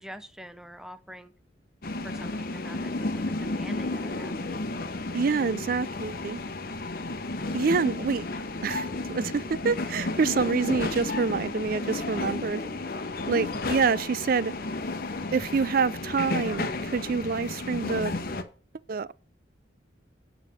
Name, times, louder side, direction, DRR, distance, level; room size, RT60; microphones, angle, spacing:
voice 1, 0.0-1.3 2.0-4.5 12.2-12.4 12.6-12.7, equal, 5° right, 0.6 m, -45 dB
sound 1, 1.8-18.4, left 2 dB, 50° left, 0.9 m, -32 dB
voice 2, 5.1-6.4 7.5-8.3 8.6-12.6 13.3-14.5 15.3-18.2 18.9-19.1, right 5 dB, 50° right, 0.4 m, -27 dB
8.8 x 5.0 x 6.8 m
head